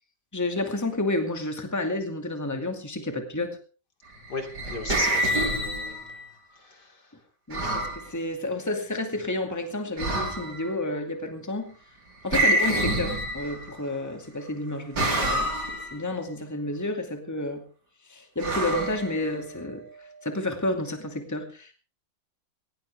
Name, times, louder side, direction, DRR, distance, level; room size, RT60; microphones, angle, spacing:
voice 1, 0.3-3.6 7.5-11.8 12.2-17.6 18.0-21.7, left 2 dB, 10° left, 5 dB, 2.3 m, -30 dB
voice 2, 4.3-6.2 6.6-7.1, left 3 dB, 65° left, 4 dB, 3.6 m, -37 dB
sound 1, 4.3-6.3 7.5-8.0 10.0-10.7 12.3-13.8 15.0-16.0 18.4-19.6, right 1 dB, 65° right, 4.6 m, -27 dB
19.0 x 18.0 x 3.5 m, 0.37 s
omnidirectional pair, 1.9 m